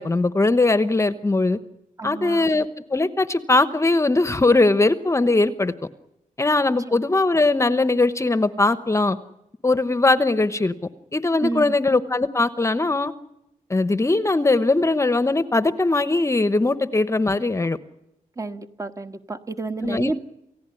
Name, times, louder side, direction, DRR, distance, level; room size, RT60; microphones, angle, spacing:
voice 1, 0.0-1.6 2.0-5.7 6.4-9.2 9.6-10.7 11.1-13.1 13.7-17.8 19.8-20.1, left 2 dB, 20° left, 13 dB, 1.0 m, -20 dB
voice 2, 2.0-2.5 6.9-7.0 11.4-11.8 18.4-20.2, right 3 dB, 25° right, 8 dB, 1.4 m, -30 dB
29.0 x 16.5 x 9.8 m, 0.86 s
wide cardioid pair, 155°, 14 cm